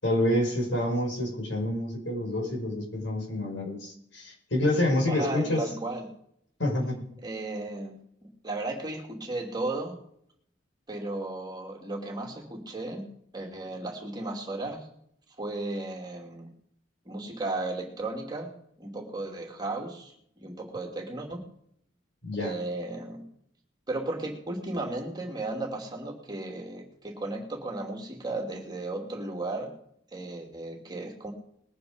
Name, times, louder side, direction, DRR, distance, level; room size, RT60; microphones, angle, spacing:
voice 1, 0.0-5.6 6.6-7.0 22.2-22.5, left 1 dB, 75° left, 0 dB, 5.3 m, -28 dB
voice 2, 5.1-6.1 7.2-8.0 8.4-10.0 10.9-13.1 13.3-14.9 15.4-16.5 17.1-18.5 18.8-21.4 22.4-23.2 23.9-29.7 30.1-31.3, right 2 dB, 20° right, 1 dB, 2.6 m, -35 dB
20.5 x 9.3 x 5.0 m, 0.69 s
head